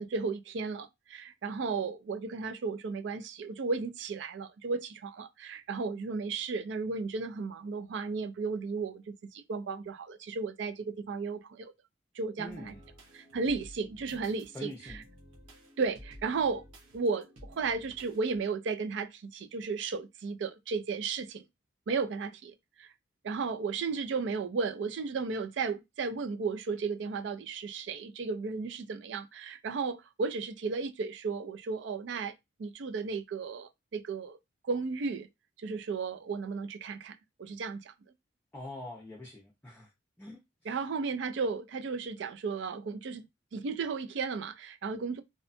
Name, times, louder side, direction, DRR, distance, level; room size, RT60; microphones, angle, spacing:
voice 1, 0.0-11.7 12.2-12.7 13.1-14.7 15.8-16.6 16.9-21.4 21.9-22.9 23.2-32.3 32.6-34.4 34.6-35.3 35.6-37.9 40.7-43.2 43.5-45.2, right 4 dB, 65° right, 0.3 m, -34 dB
voice 2, 12.4-12.7 14.5-15.0 38.5-39.9 40.2-40.8, left 1 dB, 10° left, 0.5 m, -44 dB
sound 1, 12.5-18.4, equal, 85° right, 0.8 m, -53 dB
2.7 x 2.2 x 2.5 m
head